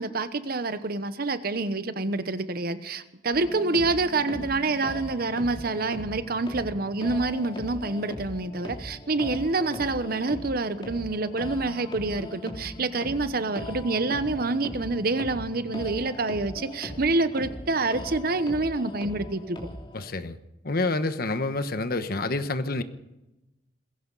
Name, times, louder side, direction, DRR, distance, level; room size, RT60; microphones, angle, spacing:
voice 1, 0.0-19.6, right 3 dB, 55° right, 1.0 m, -27 dB
sound 1, 3.3-20.1, left 1 dB, 25° left, 3.2 m, -39 dB
voice 2, 19.9-20.4 20.6-22.8, left 2 dB, 55° left, 1.2 m, -28 dB
21.0 x 16.5 x 4.1 m
head